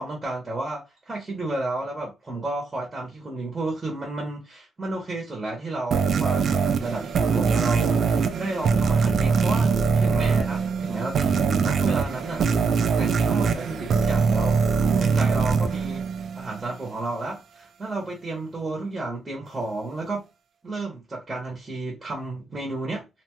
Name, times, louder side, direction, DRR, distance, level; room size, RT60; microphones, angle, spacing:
voice 1, 0.0-12.4 13.0-16.1 16.3-20.3 20.6-23.1, right 2 dB, 20° right, 0.8 m, -32 dB
sound 1, 5.9-16.7, right 5 dB, 50° right, 0.4 m, -22 dB
2.7 x 2.2 x 2.9 m
cardioid pair, 150°, 0 cm